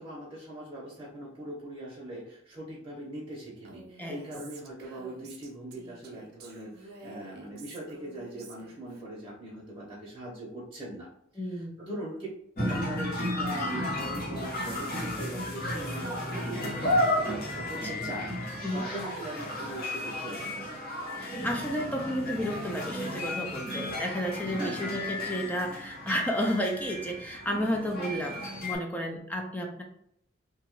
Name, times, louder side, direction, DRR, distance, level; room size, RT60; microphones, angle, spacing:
voice 1, 0.0-11.1 11.4-12.2 12.6-20.7 24.4-24.9, right 1 dB, 15° right, -6 dB, 0.7 m, -41 dB
Female speech woman speaking, 3.6-9.0, right 3 dB, 50° right, 0.5 m, -50 dB
voice 2, 4.0-4.4 11.4-11.8 17.7-18.0 18.6-18.9 21.2-29.8, equal, 10° left, 2 dB, 0.3 m, -32 dB
sound 1, 12.6-28.8, left 1 dB, 50° left, 1.0 m, -33 dB
2.8 x 2.3 x 3.0 m, 0.71 s
head